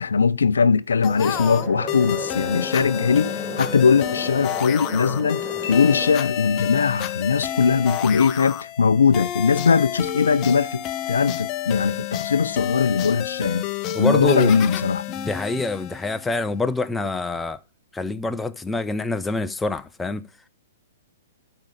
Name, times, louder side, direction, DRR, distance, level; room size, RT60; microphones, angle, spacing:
voice 1, 0.0-5.4 5.7-13.7 14.0-15.0, left 5 dB, 80° left, 0.5 m, -20 dB
sound 1, 1.0-16.5, left 12 dB, 30° left, 0.9 m, -30 dB
sound 2, 1.2-6.2, right 4 dB, 10° right, 1.3 m, -36 dB
sound 3, 5.6-9.2, left 8 dB, 60° left, 1.3 m, -39 dB
voice 2, 13.9-14.5 15.1-17.6 17.9-20.2, left 2 dB, 10° left, 0.7 m, -26 dB
12.0 x 5.0 x 6.7 m
hypercardioid pair, 120°, 0 cm